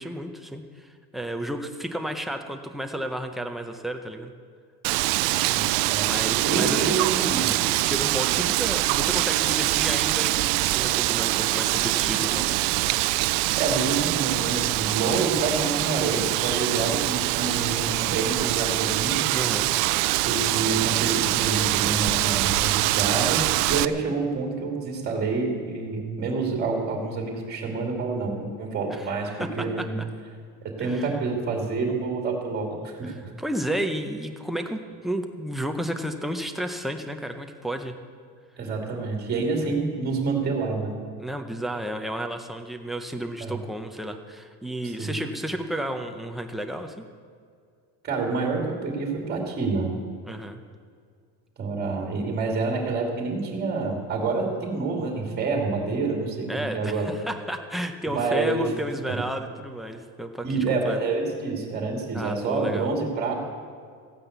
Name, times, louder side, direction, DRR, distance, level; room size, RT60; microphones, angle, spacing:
voice 1, 0.0-4.3 6.0-6.9 7.8-12.7 19.3-19.7 28.9-29.1 29.4-29.8 30.8-31.1 33.4-37.9 41.2-47.1 50.3-50.6 56.5-61.0 62.1-62.9, right 1 dB, ahead, 4 dB, 0.6 m, -32 dB
Wind, 4.8-23.9, right 18 dB, 85° right, 0.6 m, -24 dB
voice 2, 5.5-6.1 6.4-7.5 13.6-19.2 20.2-30.0 30.6-33.3 38.6-41.0 43.4-43.6 44.8-45.1 48.0-49.9 51.6-57.1 58.1-58.7 60.4-63.3, right 4 dB, 25° right, 1 dB, 2.6 m, -28 dB
15.0 x 9.7 x 8.0 m, 2.1 s
cardioid pair, 175°, 40 cm